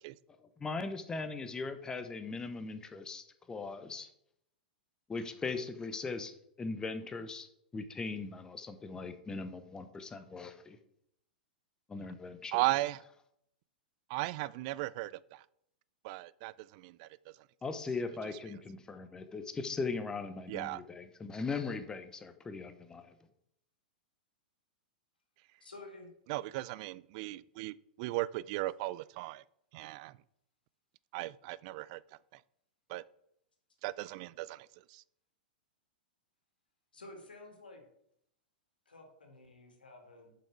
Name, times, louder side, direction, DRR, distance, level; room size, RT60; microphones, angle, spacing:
voice 1, 0.4-4.1 5.1-6.3 6.6-7.5 7.7-10.8 11.9-12.6 17.6-23.1, left 4 dB, 15° left, 0.8 m, -39 dB
voice 2, 12.5-13.0 14.1-15.4 16.0-17.1 20.5-20.8 26.3-29.4 29.7-30.2 31.1-32.0 32.3-32.4 32.9-33.0 33.8-35.0, right 18 dB, 45° right, 0.3 m, -36 dB
voice 3, 25.6-26.1 36.9-37.8 38.9-40.3, left 2 dB, 85° left, 2.0 m, -51 dB
7.1 x 5.7 x 4.6 m
figure-of-eight pair, 105°, 5 cm